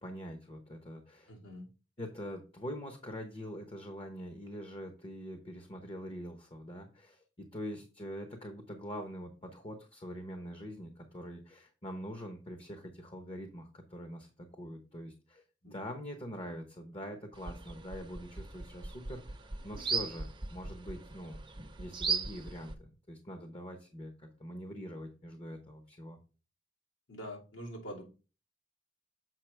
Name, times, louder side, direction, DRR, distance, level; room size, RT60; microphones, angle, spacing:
voice 1, 0.0-1.3 2.0-15.4 15.7-19.4 19.6-21.4 21.8-26.2, equal, 30° left, 5 dB, 0.9 m, -44 dB
voice 2, 1.3-1.7 15.6-15.8 27.1-28.0, equal, 80° left, -2 dB, 2.7 m, -44 dB
sound 1, 17.3-22.7, right 4 dB, 25° right, 0.7 m, -38 dB
7.5 x 5.4 x 3.3 m, 0.34 s
head